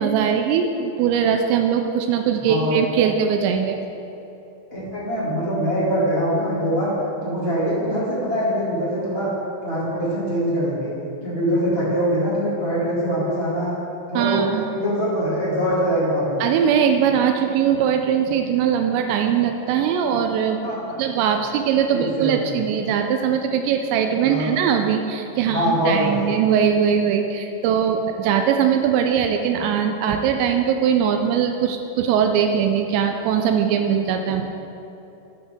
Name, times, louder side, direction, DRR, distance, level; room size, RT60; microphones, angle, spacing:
voice 1, 0.0-3.8 14.2-14.7 16.4-20.6 21.0-34.5, right 8 dB, 85° right, 5 dB, 2.7 m, -21 dB
voice 2, 2.4-2.7 4.7-6.9 7.2-9.3 9.6-10.9 11.2-13.7 14.1-14.4 14.7-16.4 20.6-21.0 21.9-22.5 24.2-24.5 25.5-26.3 34.3-34.5, equal, 25° left, -9 dB, 1.4 m, -23 dB
12.5 x 8.1 x 3.6 m, 2.9 s
omnidirectional pair, 5.3 m